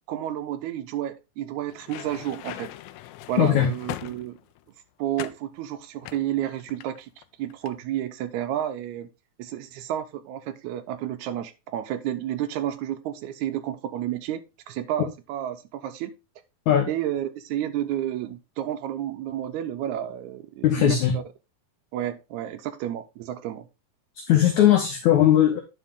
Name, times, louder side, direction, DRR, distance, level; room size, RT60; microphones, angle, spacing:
voice 1, 0.1-2.7 3.3-4.4 5.0-9.1 9.4-14.4 14.7-16.1 16.9-21.2 21.9-23.7, right 11 dB, 85° right, 1.6 m, -31 dB
sound 1, 1.7-4.6 5.2-5.5 6.0-7.2 7.5-7.8, left 15 dB, 90° left, 1.7 m, -40 dB
voice 2, 20.6-21.1 24.2-25.6, left 11 dB, 70° left, 2.0 m, -19 dB
9.9 x 5.3 x 3.6 m
omnidirectional pair, 4.1 m